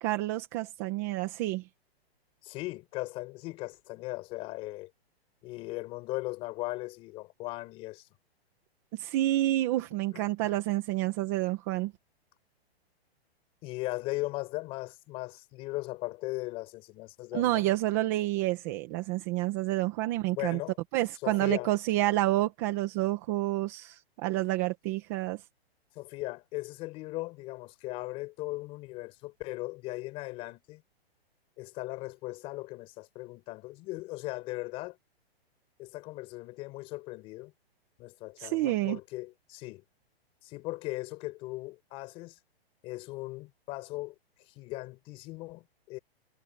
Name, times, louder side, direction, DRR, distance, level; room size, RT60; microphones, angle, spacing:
voice 1, 0.0-1.6 8.9-11.9 17.3-20.6 20.9-25.4 38.4-39.0, right 16 dB, 15° right, 1.4 m, -29 dB
voice 2, 2.4-4.9 5.4-8.1 10.1-10.6 13.6-17.7 20.3-20.8 21.2-21.7 26.0-30.8 31.6-35.0 35.8-37.5 38.0-39.8 40.4-42.4 42.8-44.1 44.5-46.0, left 20 dB, 15° left, 5.7 m, -38 dB
hypercardioid pair, 180°, 32 cm